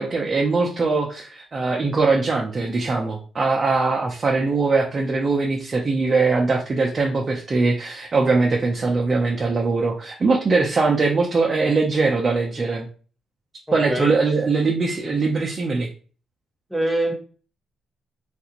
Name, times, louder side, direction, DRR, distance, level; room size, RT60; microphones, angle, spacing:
voice 1, 0.0-12.9 13.7-15.9, right 3 dB, 35° right, 0 dB, 0.5 m, -21 dB
voice 2, 16.7-17.1, right 1 dB, ahead, 1 dB, 1.0 m, -22 dB
3.3 x 2.4 x 2.9 m, 0.40 s
cardioid pair, 90°, 0 cm